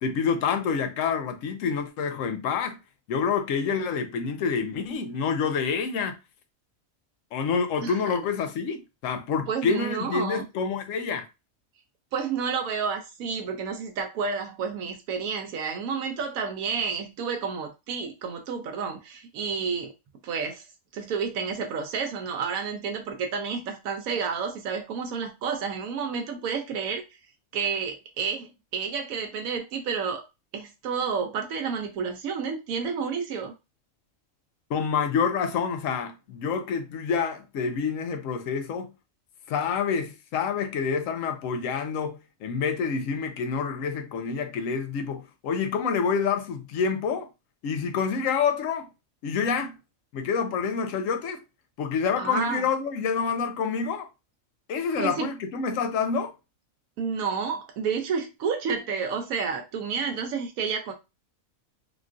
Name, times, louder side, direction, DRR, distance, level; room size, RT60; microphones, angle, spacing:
voice 1, 0.0-2.8 3.1-6.2 7.3-11.3 34.7-38.9 39.5-47.3 47.6-48.9 49.2-49.8 50.1-51.4 51.8-54.1 54.7-56.3, left 6 dB, 70° left, 1.0 m, -27 dB
voice 2, 7.8-8.1 9.5-10.5 12.1-19.9 20.2-20.6 20.9-27.0 27.5-30.2 30.5-33.5 52.2-52.6 55.0-55.3 57.0-60.9, right 6 dB, 85° right, 1.0 m, -30 dB
3.6 x 2.3 x 2.5 m
omnidirectional pair, 1.4 m